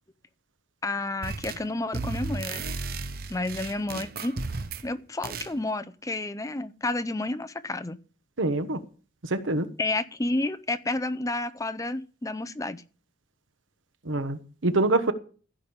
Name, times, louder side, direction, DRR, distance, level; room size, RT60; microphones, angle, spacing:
voice 1, 0.8-2.6 3.3-4.3 4.8-8.0 9.8-12.8, left 2 dB, 15° left, 0.5 m, -30 dB
sound 1, 1.2-1.7 1.9-4.9 5.2-5.5, right 3 dB, 50° right, 0.8 m, -34 dB
voice 2, 8.4-8.8 9.3-9.7 14.1-15.1, right 2 dB, 85° right, 1.2 m, -25 dB
15.5 x 5.2 x 7.1 m
head